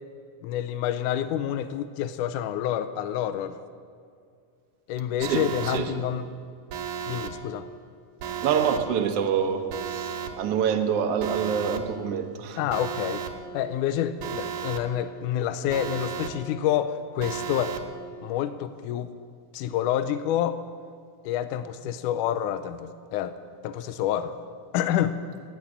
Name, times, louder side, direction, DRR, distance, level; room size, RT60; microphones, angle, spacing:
voice 1, 0.4-3.6 4.9-6.3 7.1-7.7 12.6-13.2 13.5-17.8 18.2-19.1 19.5-20.6 21.2-23.4 23.6-24.3 24.7-25.2, left 10 dB, 80° left, 11 dB, 2.1 m, -28 dB
voice 2, 5.2-5.9 8.4-12.6, right 7 dB, 60° right, 4 dB, 1.8 m, -26 dB
Alarm, 5.2-5.8 6.7-7.3 8.2-8.8 9.7-10.3 11.2-11.8 12.7-13.3 14.2-14.8 15.7-16.3 17.2-17.8, right 8 dB, 75° right, 2.6 m, -33 dB
16.5 x 9.0 x 9.8 m, 2.2 s
omnidirectional pair, 3.7 m